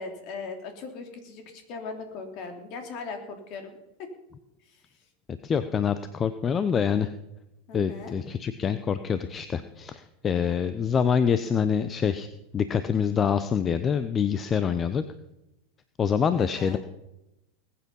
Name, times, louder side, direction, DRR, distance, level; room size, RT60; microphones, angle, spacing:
voice 1, 0.0-4.1 4.7-4.8 7.7-8.1 16.4-16.8, left 4 dB, 50° left, 5 dB, 3.2 m, -39 dB
voice 2, 5.4-7.1 7.7-12.3 12.5-15.0 16.0-16.8, left 7 dB, 25° left, 12 dB, 0.8 m, -25 dB
20.5 x 8.6 x 5.5 m, 0.91 s
hypercardioid pair, 95°, 0 cm